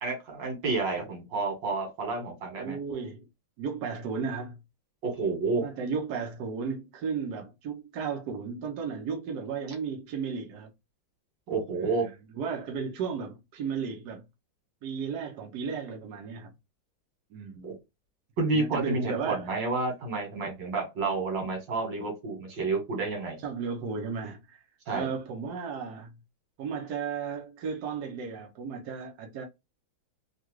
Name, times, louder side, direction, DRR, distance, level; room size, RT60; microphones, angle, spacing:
voice 1, 0.0-2.8 5.0-5.7 11.5-12.1 17.6-17.7 18.4-23.4 24.9-25.1, right 3 dB, 85° right, 2.0 m, -30 dB
voice 2, 2.6-3.2 3.6-4.6 5.6-10.7 11.8-14.2 14.8-16.5 17.3-17.8 18.5-19.5 23.4-24.6 24.9-26.1 26.6-29.4, right 5 dB, 70° right, 1.2 m, -34 dB
3.7 x 2.2 x 3.0 m
omnidirectional pair, 2.0 m